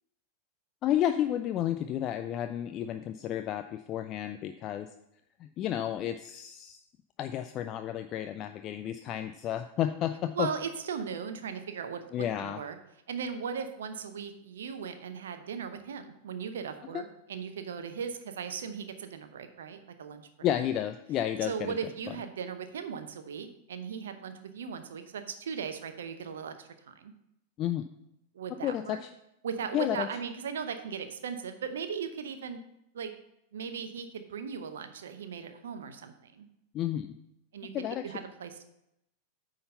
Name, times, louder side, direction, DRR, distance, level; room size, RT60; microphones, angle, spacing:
voice 1, 0.8-4.9 5.4-6.8 7.2-10.5 12.1-12.6 16.9-17.0 20.4-21.8 22.1-22.2 27.6-27.8 28.6-29.1 29.7-30.1 36.7-37.1 37.7-38.0, left 11 dB, 35° left, 8 dB, 0.3 m, -31 dB
voice 2, 10.3-12.8 13.1-20.5 21.4-27.1 28.3-29.0 29.4-32.6 32.9-33.1 33.5-36.4 37.5-38.6, right 6 dB, 65° right, 9 dB, 0.7 m, -38 dB
9.3 x 3.9 x 5.4 m, 0.81 s
figure-of-eight pair, 90°, 0 cm